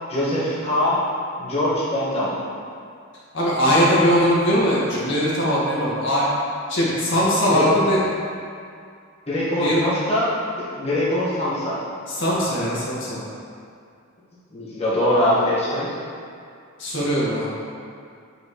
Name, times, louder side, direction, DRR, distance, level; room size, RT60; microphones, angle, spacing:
voice 1, 0.1-1.0 1.4-2.4 7.5-7.6 9.3-11.8 14.5-15.9, left 1 dB, 30° left, -10 dB, 1.6 m, -22 dB
voice 2, 3.3-6.3 6.7-8.0 9.6-9.8 12.1-13.2 16.8-17.5, equal, 60° left, -7 dB, 1.7 m, -20 dB
8.2 x 5.6 x 3.2 m, 2.3 s
head